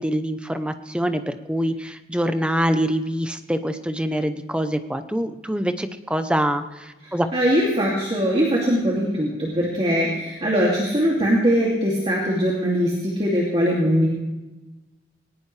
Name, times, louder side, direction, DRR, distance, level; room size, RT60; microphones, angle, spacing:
voice 1, 0.0-7.3, equal, 5° right, 8 dB, 0.7 m, -25 dB
voice 2, 7.0-14.1, equal, 30° right, -4 dB, 2.5 m, -21 dB
20.5 x 18.5 x 3.3 m, 1.1 s
head